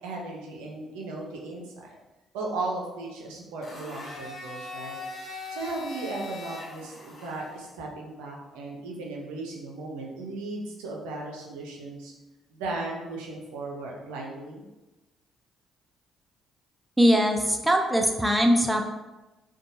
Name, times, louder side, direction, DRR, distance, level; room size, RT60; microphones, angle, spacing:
voice 1, 0.0-2.0 2.3-5.0 5.5-12.1 12.5-14.6, right 2 dB, 80° right, -1 dB, 0.5 m, -36 dB
Domestic sounds home sounds, 3.6-7.6, left 2 dB, 50° left, 1.1 m, -40 dB
voice 2, 17.0-18.8, equal, 5° right, 3 dB, 0.4 m, -21 dB
2.6 x 2.2 x 2.6 m, 1.1 s
hypercardioid pair, 50°, 0 cm